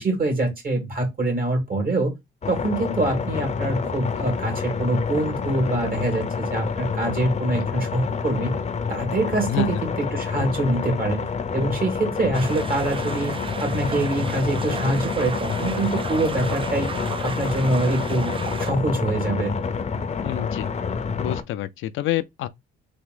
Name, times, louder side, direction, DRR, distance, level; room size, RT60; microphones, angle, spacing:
voice 1, 0.0-2.1 2.5-8.6 8.9-11.2 11.5-13.3 13.6-16.9 17.2-19.6, right 2 dB, 45° right, 2.2 m, -25 dB
sound 1, 2.4-21.4, left 5 dB, 35° left, 0.6 m, -28 dB
voice 2, 9.5-9.8 20.2-20.7 21.2-22.5, left 14 dB, 80° left, 0.5 m, -27 dB
sound 2, 12.3-18.7, right 5 dB, 25° right, 0.4 m, -35 dB
3.5 x 2.6 x 3.7 m
cardioid pair, 90°, 20 cm